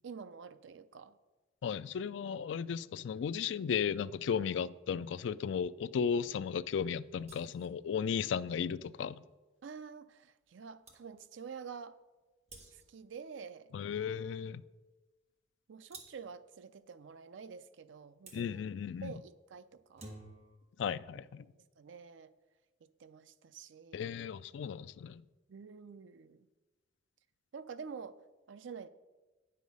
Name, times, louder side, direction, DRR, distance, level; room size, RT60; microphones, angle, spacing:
voice 1, 0.0-1.1 9.6-12.0 12.7-13.8 15.7-18.6 19.0-20.1 21.5-22.3 22.8-24.2 25.5-26.5 27.5-28.2 28.5-28.9, right 6 dB, 80° right, 0.5 m, -48 dB
voice 2, 1.6-9.2 13.7-14.6 18.3-19.1 20.8-21.5 23.9-25.2, left 7 dB, 75° left, 0.3 m, -35 dB
sound 1, 7.2-7.8 10.5-10.6 10.8-11.0 12.5-13.0 15.9-16.3 18.3-18.5 19.8-20.6, right 2 dB, 35° right, 1.2 m, -52 dB
9.3 x 6.5 x 5.3 m
head